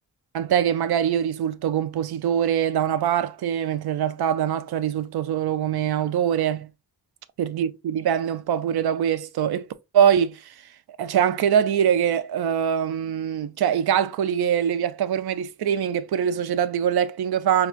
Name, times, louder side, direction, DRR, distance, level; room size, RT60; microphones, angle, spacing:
voice 1, 0.3-6.7 7.4-9.7 9.9-10.5 11.0-17.7, right 9 dB, 80° right, 0.5 m, -23 dB
5.8 x 2.3 x 2.4 m
wide cardioid pair, 155°, 37 cm